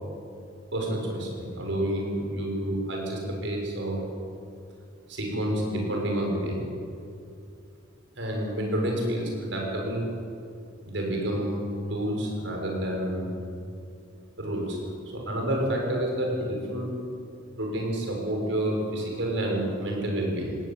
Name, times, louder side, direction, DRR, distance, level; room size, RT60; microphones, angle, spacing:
voice 1, 0.7-4.0 5.1-6.6 8.2-10.1 10.8-13.4 14.4-14.8 15.1-16.9 17.5-20.6, right 1 dB, 70° right, 0 dB, 6.7 m, -29 dB
20.0 x 16.5 x 9.0 m, 2.5 s
head